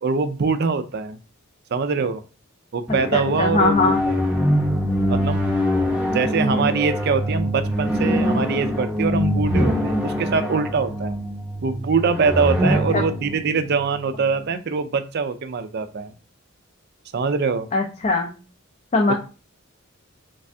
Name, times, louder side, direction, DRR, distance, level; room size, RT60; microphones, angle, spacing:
voice 1, 0.0-1.2 1.7-2.2 2.7-4.2 5.1-5.4 6.1-11.2 11.6-16.1 17.1-17.7, right 5 dB, 50° right, 10 dB, 0.4 m, -23 dB
sound 1, 2.9-14.5, equal, 5° right, 0.8 m, -23 dB
voice 2, 3.1-4.0 12.7-13.1 17.7-18.4 18.9-19.1, left 3 dB, 35° left, 2 dB, 0.4 m, -21 dB
3.3 x 3.2 x 2.6 m, 0.34 s
head